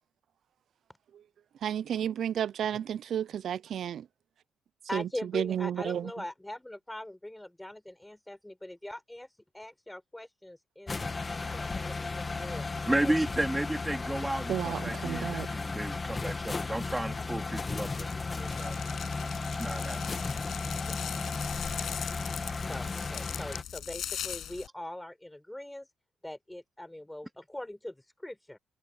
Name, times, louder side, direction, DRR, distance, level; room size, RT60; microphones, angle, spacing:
voice 1, 1.6-4.0 4.9-5.1 5.3-6.1 14.5-15.5, right 9 dB, 65° right, 0.3 m, -32 dB
voice 2, 4.9-12.7 13.0-13.1 16.2-16.4 20.9-21.3 22.6-25.9 26.2-28.6, left 1 dB, 10° left, 4.7 m, -42 dB
sound 1, 10.9-23.6, left 3 dB, 25° left, 1.8 m, -35 dB
voice 3, 12.9-18.7 19.5-20.0, right 1 dB, 10° right, 3.1 m, -33 dB
sound 2, 17.9-24.7, left 10 dB, 70° left, 6.4 m, -40 dB
cardioid pair, 90°, 0 cm